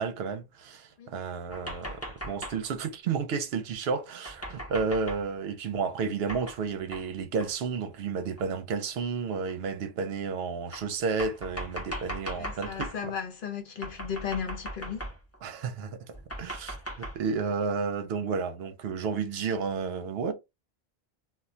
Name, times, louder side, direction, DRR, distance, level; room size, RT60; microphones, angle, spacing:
voice 1, 0.0-12.9 15.4-20.3, right 5 dB, 75° right, 0.8 m, -32 dB
sound 1, 1.5-2.7 4.2-5.3 6.3-6.6 6.9-7.1 7.4-7.5 8.4-8.5 9.5-9.6 10.7-13.0 13.8-15.4 16.1-17.2, equal, 15° left, 0.6 m, -39 dB
voice 2, 12.4-15.1, left 7 dB, 55° left, 0.8 m, -35 dB
2.3 x 2.2 x 3.7 m
omnidirectional pair, 1.1 m